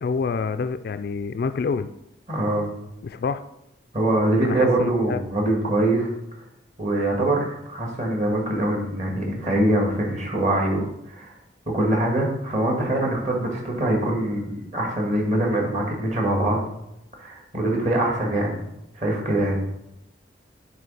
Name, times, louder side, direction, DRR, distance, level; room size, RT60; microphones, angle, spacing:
voice 1, 0.0-1.9 3.0-3.4 4.4-5.2, left 5 dB, 50° left, 11 dB, 0.3 m, -27 dB
voice 2, 2.3-2.7 3.9-6.1 6.8-11.3 11.7-16.6 17.2-18.6 19.0-19.6, right 1 dB, 40° right, -1 dB, 1.7 m, -23 dB
9.1 x 3.2 x 5.4 m, 0.84 s
head